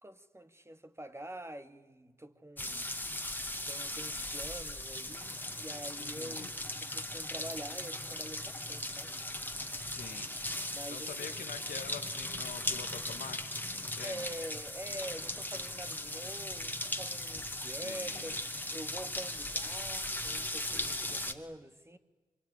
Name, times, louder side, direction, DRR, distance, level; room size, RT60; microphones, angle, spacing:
voice 1, 0.0-2.9 3.6-6.5 6.8-9.1 10.7-11.4 14.0-22.0, right 1 dB, 15° right, 2.4 m, -46 dB
sound 1, 2.6-21.3, left 1 dB, 10° left, 2.5 m, -38 dB
voice 2, 6.0-6.5 9.8-10.3 10.9-14.3 17.5-18.4 20.9-21.4, left 7 dB, 85° left, 2.0 m, -47 dB
24.5 x 23.0 x 9.9 m
supercardioid pair, 40°, 15 cm